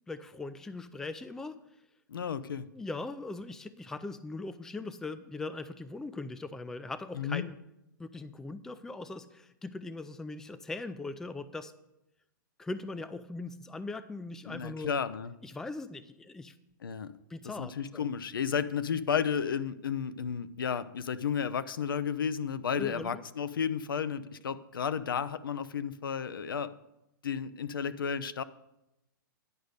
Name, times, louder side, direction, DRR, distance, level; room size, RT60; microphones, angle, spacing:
voice 1, 0.1-1.6 2.7-7.6 8.0-11.7 12.6-14.9 15.4-16.6 17.3-18.1 22.8-23.1, left 3 dB, 5° left, 14 dB, 0.3 m, -40 dB
voice 2, 2.1-2.7 7.1-7.4 14.5-15.3 16.8-17.1 17.4-26.7 27.2-28.4, left 7 dB, 80° left, 14 dB, 0.5 m, -33 dB
10.0 x 5.1 x 6.5 m, 0.88 s
hypercardioid pair, 125°, 11 cm